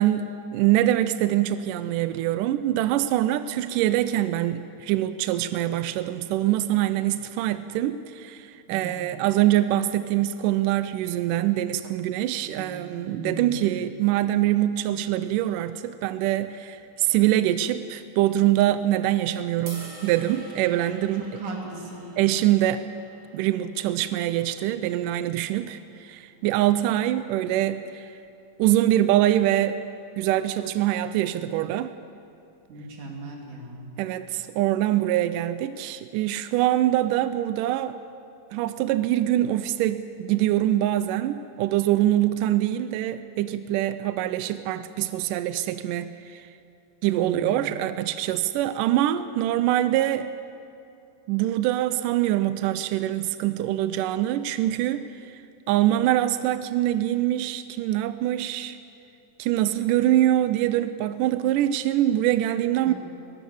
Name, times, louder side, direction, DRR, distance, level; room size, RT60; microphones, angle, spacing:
voice 1, 0.0-21.2 22.2-22.8 23.3-28.1 28.6-29.8 30.2-31.9 34.0-38.0 38.5-46.5 47.0-50.3 51.3-55.4 55.7-58.8 59.4-62.9, right 13 dB, 80° right, 12 dB, 1.9 m, -24 dB
voice 2, 8.7-9.1 12.4-13.7 21.4-22.1 32.7-33.9 47.2-47.7 62.9-63.0, right 2 dB, 55° right, 0 dB, 4.3 m, -38 dB
sound 1, 19.7-25.9, right 2 dB, 30° right, 3.0 m, -47 dB
22.5 x 18.5 x 7.2 m, 2.6 s
omnidirectional pair, 4.4 m